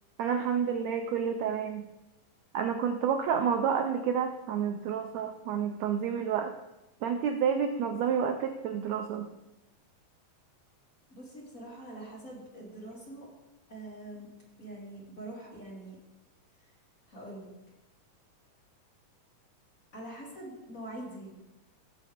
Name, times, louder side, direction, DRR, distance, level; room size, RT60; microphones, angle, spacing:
voice 1, 0.2-1.8 2.5-6.5 7.0-9.3, right 7 dB, 80° right, 6 dB, 1.6 m, -29 dB
voice 2, 11.1-13.3 13.7-14.3 14.6-16.0 17.1-17.5 19.9-21.5, right 1 dB, 25° left, -5 dB, 3.0 m, -44 dB
17.0 x 7.5 x 3.6 m, 0.96 s
omnidirectional pair, 3.8 m